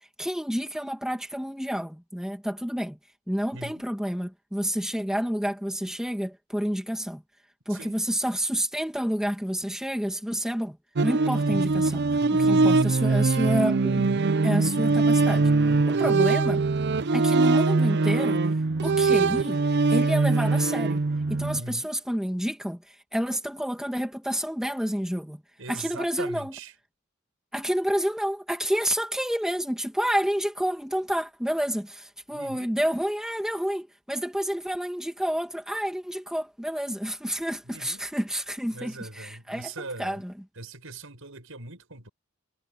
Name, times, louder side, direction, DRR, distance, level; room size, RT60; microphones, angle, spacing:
voice 1, 0.2-3.0 3.3-7.2 7.7-10.8 11.0-12.0 12.3-14.1 14.4-15.5 15.9-16.6 17.1-18.4 18.8-19.6 19.9-21.0 21.3-25.4 25.7-26.5 27.5-39.7 40.0-40.3, equal, 5° right, 2.0 m, -29 dB
voice 2, 3.5-3.9 7.7-8.0 11.4-11.7 12.5-13.0 15.9-16.2 21.5-21.9 25.6-26.7 32.3-32.7 37.7-38.0 38.7-40.2 40.6-42.1, right 3 dB, 70° right, 7.7 m, -40 dB
sound 1, 11.0-21.6, right 3 dB, 55° right, 0.6 m, -22 dB
head